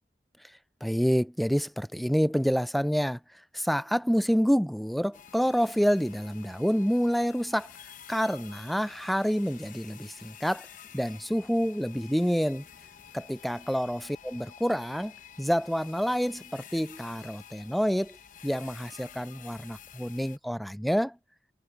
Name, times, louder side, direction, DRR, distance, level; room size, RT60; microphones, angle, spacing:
voice 1, 0.8-3.2 3.5-7.7 8.1-10.7 10.9-12.6 13.1-15.1 15.4-18.2 18.4-21.2, equal, ahead, 0.4 m, -27 dB
sound 1, 5.1-20.4, left 9 dB, 45° left, 0.8 m, -50 dB
head